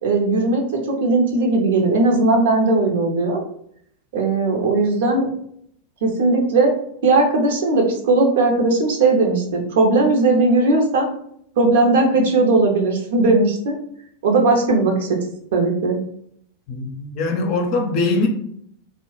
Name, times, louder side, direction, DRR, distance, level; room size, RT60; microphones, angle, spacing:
voice 1, 0.0-3.4 4.1-5.3 6.0-6.7 7.0-11.1 11.6-13.7 14.2-15.2 15.5-16.0, right 3 dB, 55° right, 0.7 m, -18 dB
voice 2, 16.7-18.3, left 3 dB, 40° left, 0.6 m, -22 dB
3.0 x 2.1 x 3.0 m
figure-of-eight pair, 90°, 0 cm